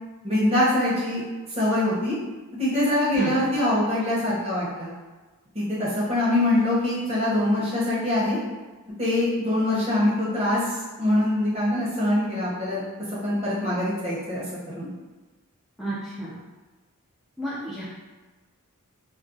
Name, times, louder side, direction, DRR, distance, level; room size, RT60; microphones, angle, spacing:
voice 1, 0.2-1.2 1.6-2.2 2.6-4.9 5.5-8.4 9.0-12.8 13.2-14.4 14.7-14.9, left 1 dB, 30° right, -8 dB, 0.7 m, -23 dB
voice 2, 15.8-16.4 17.4-17.9, right 1 dB, ahead, -12 dB, 0.3 m, -31 dB
2.3 x 2.2 x 2.5 m, 1.3 s
head